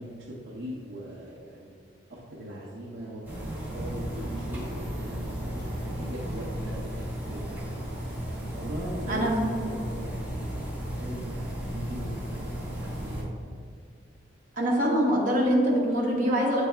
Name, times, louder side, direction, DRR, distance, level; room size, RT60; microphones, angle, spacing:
voice 1, 0.0-1.7 2.1-7.8 8.4-11.5 11.7-13.3, right 1 dB, 65° right, -6 dB, 0.8 m, -40 dB
sound 1, 3.2-13.2, equal, 10° right, 1.4 m, -34 dB
voice 2, 9.1-9.6 14.6-16.7, equal, 45° right, -4 dB, 1.1 m, -24 dB
8.7 x 3.4 x 3.4 m, 2.1 s
head